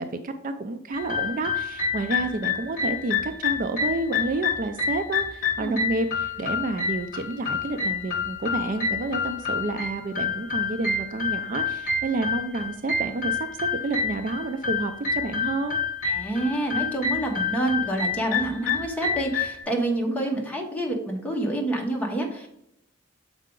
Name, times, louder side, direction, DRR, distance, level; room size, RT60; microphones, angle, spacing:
voice 1, 0.0-15.8 20.1-20.2, right 2 dB, 40° right, 8 dB, 0.4 m, -29 dB
sound 1, 0.9-19.6, left 5 dB, 45° left, 1.2 m, -28 dB
voice 2, 16.0-22.5, right 1 dB, 5° left, 0 dB, 1.1 m, -27 dB
6.5 x 4.8 x 3.8 m, 0.76 s
head